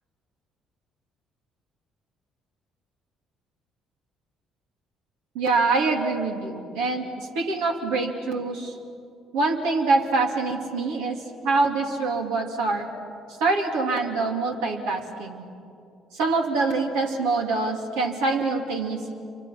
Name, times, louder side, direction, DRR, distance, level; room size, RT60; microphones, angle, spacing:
voice 1, 5.3-8.7 9.3-11.2 11.4-12.9 13.4-15.4 16.1-19.1, right 3 dB, 75° right, 2 dB, 2.7 m, -25 dB
28.5 x 25.0 x 6.0 m, 2.6 s
hypercardioid pair, 55°, 0 cm